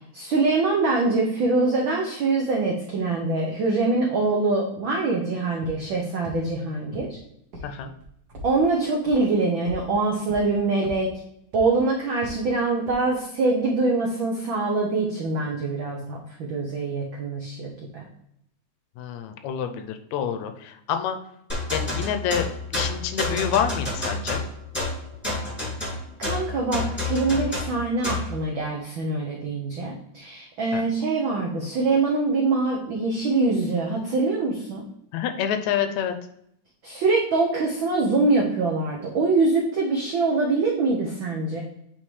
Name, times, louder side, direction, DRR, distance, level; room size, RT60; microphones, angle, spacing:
voice 1, 0.1-7.1 8.4-11.1 11.5-18.0 26.2-34.8 36.8-41.6, right 3 dB, 85° right, -1 dB, 1.0 m, -24 dB
sound 1, 5.6-5.7 6.2-6.3 6.9-7.0 7.5-7.6 8.0-8.5 9.0-9.1 9.7-9.8 10.3-10.4 10.8-10.9 11.5-11.6 12.2-12.3 12.9-13.0, left 1 dB, 50° right, 1.3 m, -38 dB
voice 2, 19.0-21.2 21.7-22.5 22.7-24.4 30.7-30.8 35.1-36.1, left 8 dB, 80° left, 8 dB, 1.8 m, -27 dB
sound 2, 21.5-28.3, left 2 dB, 5° left, 1.5 m, -29 dB
8.7 x 3.8 x 3.2 m, 0.76 s
omnidirectional pair, 3.4 m